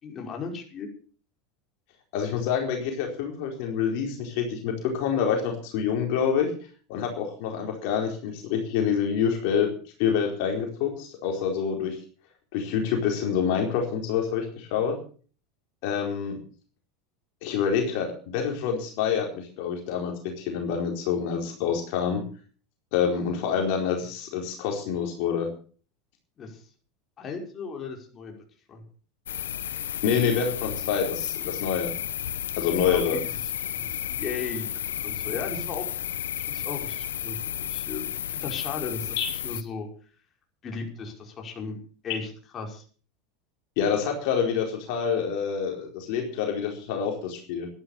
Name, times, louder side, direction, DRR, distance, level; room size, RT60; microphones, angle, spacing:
voice 1, 0.0-0.9 26.4-26.6 27.2-28.3 28.7-28.8 32.9-33.3 33.7-34.7 34.9-35.9 36.2-39.2 39.4-39.9 40.6-41.8 42.0-42.8, left 5 dB, 35° left, 2 dB, 5.4 m, -36 dB
voice 2, 2.1-6.5 6.9-9.7 10.0-12.0 12.5-15.0 15.8-16.4 17.4-22.2 22.9-25.5 30.0-31.9 32.6-33.2 39.2-39.3 43.8-47.7, left 7 dB, 65° left, 2 dB, 4.3 m, -27 dB
sound 1, 29.3-39.6, left 10 dB, 85° left, 0.9 m, -32 dB
13.0 x 12.0 x 6.9 m, 0.43 s
hypercardioid pair, 95°, 0 cm